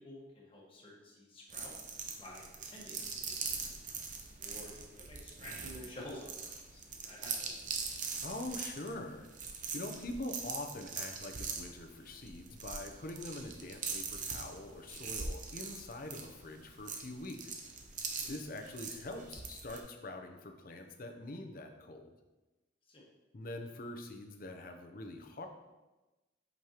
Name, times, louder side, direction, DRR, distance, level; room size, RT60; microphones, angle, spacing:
voice 1, 0.0-1.7 2.2-3.7 4.4-6.3 6.7-7.5 22.9-23.0, left 1 dB, 30° left, -4 dB, 1.5 m, -50 dB
sound 1, 1.5-19.8, right 5 dB, 40° right, 0.7 m, -42 dB
voice 2, 8.2-9.3 9.7-17.6 18.3-22.1 23.3-25.5, left 2 dB, 45° left, 5 dB, 0.7 m, -44 dB
7.8 x 5.3 x 2.9 m, 1.1 s
head